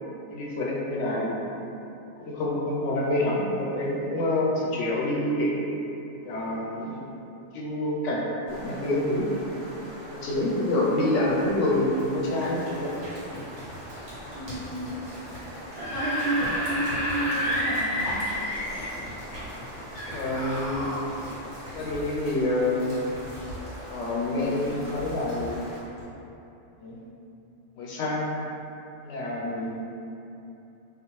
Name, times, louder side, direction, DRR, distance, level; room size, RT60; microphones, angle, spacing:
voice 1, 0.3-1.4 2.2-5.6 6.2-7.1 7.5-9.3 10.1-12.9 20.1-20.9 21.7-23.0 23.9-25.6 26.8-27.0 27.8-28.3 29.0-29.9, left 1 dB, 80° left, -5 dB, 0.9 m, -27 dB
sound 1, 8.5-25.8, equal, 30° right, 0.6 m, -43 dB
sound 2, 11.7-26.0, equal, 90° right, 1.3 m, -42 dB
voice 2, 14.3-15.0 15.7-18.3, right 1 dB, 70° right, -6 dB, 0.9 m, -31 dB
Screaming / Screech, 15.6-19.0 19.9-21.0, equal, 45° left, 0.7 m, -30 dB
2.4 x 2.4 x 3.0 m, 2.9 s
omnidirectional pair, 1.2 m